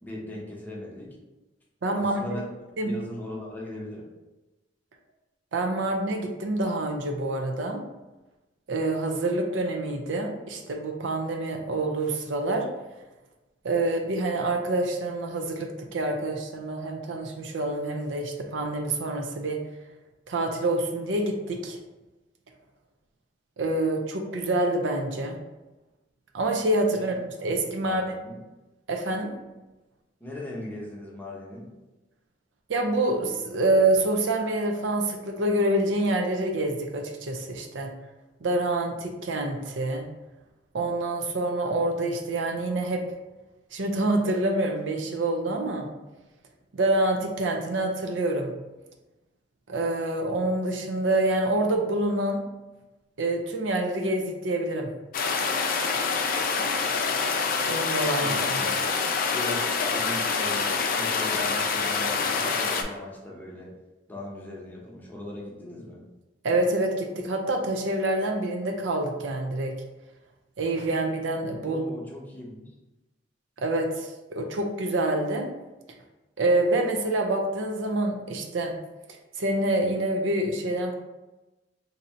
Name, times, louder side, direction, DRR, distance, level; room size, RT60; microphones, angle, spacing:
voice 1, 0.0-1.1 1.9-2.5 2.8-4.1 26.9-28.4 30.2-31.7 58.2-58.9 59.3-63.7 64.1-66.0 71.6-72.7, left 1 dB, 10° left, -4 dB, 0.7 m, -39 dB
voice 2, 1.8-2.4 2.8-2.9 5.5-7.8 8.7-12.7 13.6-19.6 20.3-21.8 23.6-25.3 26.3-28.0 28.9-29.3 32.7-37.9 38.4-40.1 40.7-43.0 43.7-45.9 46.7-48.5 49.7-52.4 53.2-54.9 57.6-58.6 66.4-69.7 70.6-71.8 73.6-75.5 76.4-78.7 79.4-80.9, right 2 dB, 80° right, 3 dB, 0.5 m, -26 dB
sound 1, 55.1-62.8, left 5 dB, 50° left, 0.4 m, -26 dB
2.7 x 2.6 x 4.2 m, 1.1 s
head